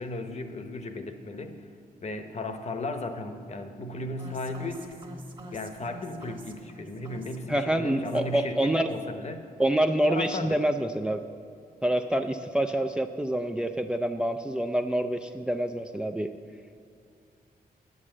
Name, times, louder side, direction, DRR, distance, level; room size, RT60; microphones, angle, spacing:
voice 1, 0.0-1.5 2.0-5.0 5.5-9.4 10.1-10.6, left 2 dB, 45° left, 7 dB, 0.9 m, -35 dB
sound 1, 4.2-8.5 8.7-9.2, right 2 dB, 30° right, 1.3 m, -47 dB
voice 2, 7.5-8.9 9.6-11.2 11.8-16.3, right 1 dB, 5° right, 6 dB, 0.3 m, -26 dB
9.6 x 8.1 x 7.6 m, 2.4 s
wide cardioid pair, 125°, 16 cm